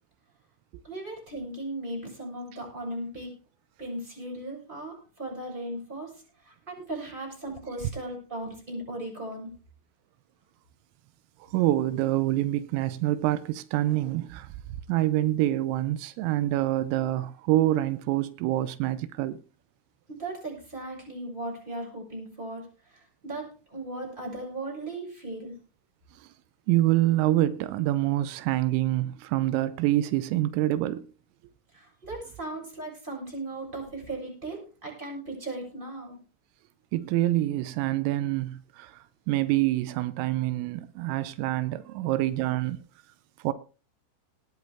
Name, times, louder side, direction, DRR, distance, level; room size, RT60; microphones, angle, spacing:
voice 1, 0.8-3.4 3.8-9.5 20.1-25.6 31.7-36.2, right 2 dB, 10° right, 6.7 m, -37 dB
voice 2, 11.5-14.5 14.9-19.4 26.7-31.1 36.9-42.9 43.4-43.5, right 15 dB, 85° right, 3.4 m, -26 dB
18.5 x 10.5 x 3.5 m
omnidirectional pair, 5.8 m